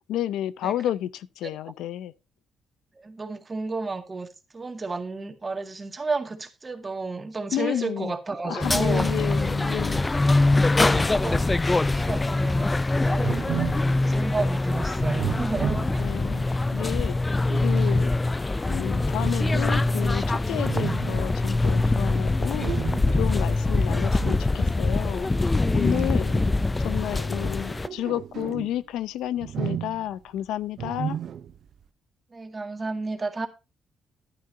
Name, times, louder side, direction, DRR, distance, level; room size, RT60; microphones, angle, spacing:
voice 1, 0.1-1.1 1.4-2.1 7.5-8.1 8.4-10.0 10.8-11.1 16.0-16.5 16.7-17.2 17.6-18.2 18.7-22.7 23.2-25.3 25.7-26.4 26.8-31.2, left 12 dB, 85° left, 0.6 m, -31 dB
voice 2, 3.0-4.3 4.5-9.2 10.9-16.1 23.8-24.1 26.6-26.8 27.3-27.5 32.3-33.5, right 3 dB, 30° right, 2.0 m, -32 dB
sound 1, 8.6-27.9, left 2 dB, 20° left, 0.4 m, -23 dB
sound 2, 13.2-14.0 15.0-16.3 17.1-18.0 19.2-20.1 20.5-21.4 22.6-23.4 24.2-24.5 25.6-26.8 27.6-28.8 29.4-30.2 30.8-31.6, right 9 dB, 60° right, 0.7 m, -33 dB
11.5 x 10.5 x 2.7 m
cardioid pair, 90°, 0 cm